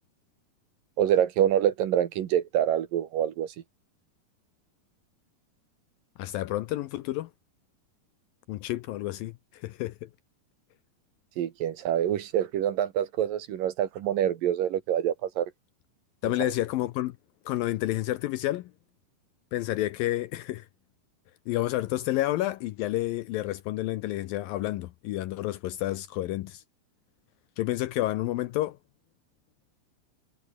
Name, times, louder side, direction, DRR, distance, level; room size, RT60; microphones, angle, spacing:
voice 1, 1.0-3.5 11.4-15.5 16.4-16.5, right 10 dB, 65° right, 2.9 m, -26 dB
voice 2, 6.2-7.3 8.5-10.1 16.2-17.2 17.5-18.7 19.5-20.7 21.5-26.6 27.6-28.8, left 16 dB, 80° left, 2.2 m, -30 dB
omnidirectional pair, 4.6 m